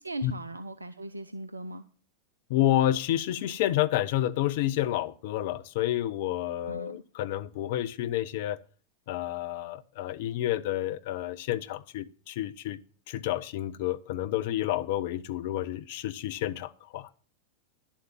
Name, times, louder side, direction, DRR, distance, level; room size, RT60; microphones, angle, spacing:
voice 1, 0.0-1.9 6.6-7.0, right 1 dB, 80° right, 0.6 m, -38 dB
voice 2, 2.5-8.6 9.1-12.8 13.1-17.1, left 13 dB, 50° left, 0.7 m, -29 dB
11.0 x 7.2 x 7.3 m
figure-of-eight pair, 90°, 0 cm